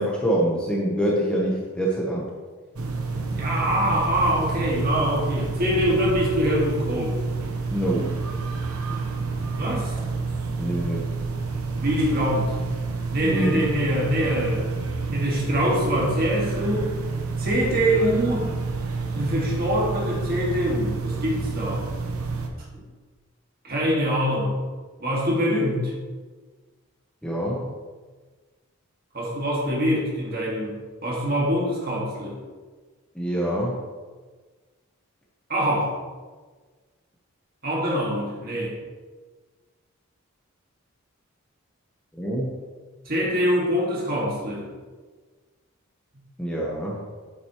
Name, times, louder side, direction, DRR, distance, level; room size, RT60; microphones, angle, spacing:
voice 1, 0.0-2.2 7.7-8.1 10.6-11.0 13.2-13.6 27.2-27.7 33.1-33.8 42.1-42.5 46.4-47.0, right 1 dB, 5° left, -4 dB, 1.0 m, -25 dB
sound 1, 2.8-22.5, right 4 dB, 80° right, 0.9 m, -29 dB
voice 2, 3.3-7.2 9.5-10.0 11.8-12.5 13.1-14.6 15.1-16.9 17.4-18.5 19.1-21.9 23.6-24.6 25.0-25.9 29.1-32.4 35.5-36.0 37.6-38.8 43.1-44.6, equal, 45° right, -3 dB, 2.0 m, -24 dB
8.7 x 7.7 x 3.1 m, 1.4 s
head